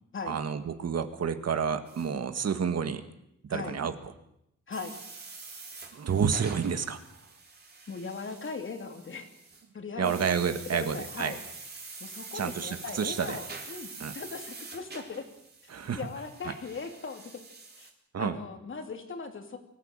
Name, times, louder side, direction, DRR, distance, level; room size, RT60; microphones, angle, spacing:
voice 1, 0.3-3.0 3.5-3.9 5.9-7.0 10.0-11.3 12.3-13.4 14.0-14.1 15.7-16.1 18.1-18.4, right 6 dB, 55° right, 9 dB, 1.8 m, -29 dB
sound 1, 1.9-2.1 4.7-9.6 10.0-17.9, right 4 dB, 35° right, 3.7 m, -46 dB
voice 2, 7.9-9.3 9.7-10.3 10.7-11.4 12.0-15.2 15.9-17.4 17.8-17.9 18.2-19.6, left 4 dB, 40° left, 6 dB, 2.9 m, -39 dB
24.0 x 15.5 x 9.0 m, 0.78 s
wide cardioid pair, 175°, 30 cm